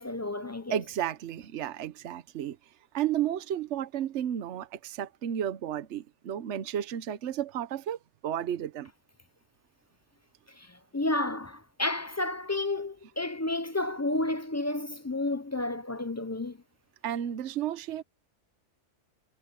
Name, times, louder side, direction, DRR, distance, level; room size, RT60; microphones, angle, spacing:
voice 1, 0.0-0.8 10.5-16.6, left 2 dB, 25° left, 0.3 m, -31 dB
voice 2, 0.7-2.6 2.9-8.9 17.0-18.0, right 10 dB, 70° right, 1.1 m, -32 dB
omnidirectional pair, 1.3 m